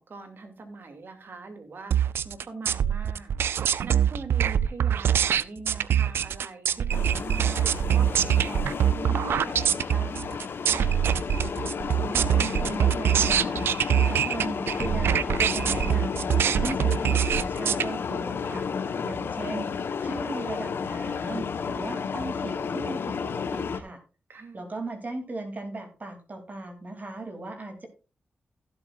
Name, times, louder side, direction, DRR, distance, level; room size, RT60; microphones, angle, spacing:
voice 1, 0.1-3.3 3.8-10.5 24.3-24.7, right 3 dB, 65° right, 6 dB, 2.6 m, -42 dB
sound 1, 1.9-17.9, right 9 dB, 85° right, 0.4 m, -24 dB
sound 2, 6.9-23.8, left 6 dB, 70° left, 1.0 m, -32 dB
voice 2, 12.0-13.7 14.0-18.7 19.0-24.0 24.5-27.9, right 2 dB, 45° right, 4 dB, 2.9 m, -37 dB
16.0 x 8.1 x 2.5 m, 0.34 s
cardioid pair, 45°, 4 cm